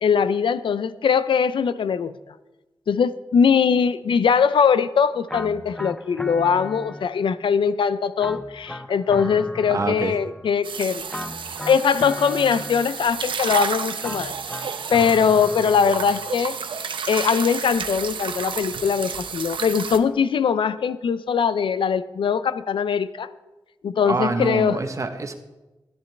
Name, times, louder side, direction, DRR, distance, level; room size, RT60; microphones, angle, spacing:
voice 1, 0.0-2.1 2.9-11.0 11.7-14.3 14.9-16.6 17.1-23.3 23.8-24.8, left 6 dB, 85° left, 15 dB, 0.5 m, -21 dB
sound 1, 5.3-7.4 8.2-10.6 11.1-13.2 14.0-16.4, left 1 dB, 10° left, 0.4 m, -37 dB
voice 2, 9.7-10.2 24.0-25.3, right 3 dB, 40° right, 6 dB, 1.0 m, -26 dB
sound 2, 10.6-20.0, right 6 dB, 80° right, 0.7 m, -31 dB
13.5 x 10.5 x 3.3 m, 1.1 s
wide cardioid pair, 100°, 8 cm